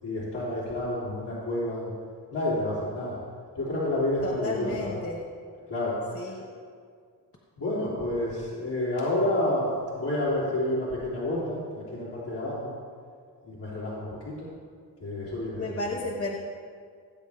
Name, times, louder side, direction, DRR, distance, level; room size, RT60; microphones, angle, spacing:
voice 1, 0.0-1.9 2.3-3.2 3.6-5.0 5.7-6.3 7.6-12.7 13.4-14.5 15.0-15.8, left 1 dB, 80° left, -10 dB, 3.4 m, -29 dB
voice 2, 4.2-5.2 6.1-6.5 15.6-16.4, left 2 dB, 35° left, 0 dB, 1.3 m, -33 dB
18.0 x 8.2 x 3.5 m, 2.1 s
cardioid pair, 70°, 40 cm